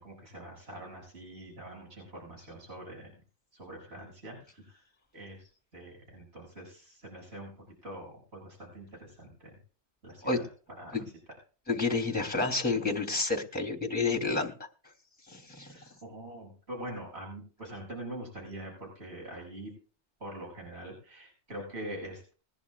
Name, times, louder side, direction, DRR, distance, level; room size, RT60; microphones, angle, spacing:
voice 1, 0.0-3.1 3.5-4.8 5.1-7.5 7.8-9.5 10.0-10.5 10.8-11.0 15.7-19.7 20.2-22.3, right 1 dB, 65° right, -2 dB, 7.5 m, -44 dB
voice 2, 11.7-14.5 15.3-15.7, left 3 dB, 10° left, 1 dB, 3.5 m, -29 dB
22.5 x 11.0 x 2.5 m, 0.38 s
omnidirectional pair, 1.2 m